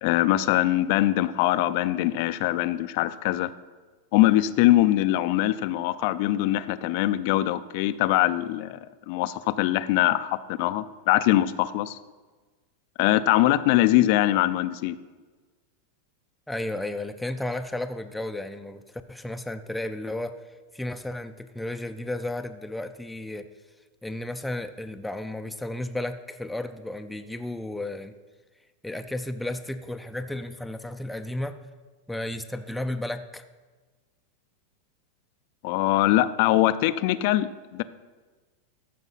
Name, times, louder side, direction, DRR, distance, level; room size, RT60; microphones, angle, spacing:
voice 1, 0.0-3.5 4.1-8.8 9.1-12.0 13.0-15.0 35.6-37.8, left 15 dB, 55° left, 15 dB, 0.5 m, -22 dB
voice 2, 16.5-18.8 19.1-23.5 24.0-28.1 28.8-31.6 32.1-33.4, left 1 dB, 5° left, 7 dB, 0.5 m, -33 dB
13.5 x 5.0 x 5.7 m, 1.3 s
supercardioid pair, 135°, 0 cm